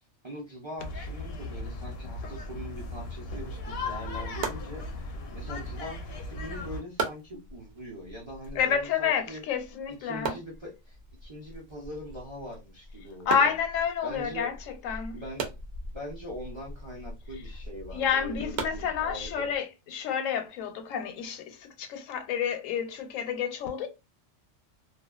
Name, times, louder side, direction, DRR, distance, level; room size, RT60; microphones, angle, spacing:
voice 1, 0.2-9.4 9.9-13.5 14.0-14.5 15.1-15.5 15.9-19.5, equal, 30° right, 0.5 m, -42 dB
sound 1, 0.8-6.8, left 2 dB, 65° left, 0.7 m, -37 dB
sound 2, 4.0-19.6, right 4 dB, 65° right, 0.8 m, -40 dB
voice 2, 8.6-10.3 13.3-14.5 14.8-15.2 17.9-23.9, left 7 dB, 85° left, 1.0 m, -29 dB
2.4 x 2.3 x 2.3 m
omnidirectional pair, 1.3 m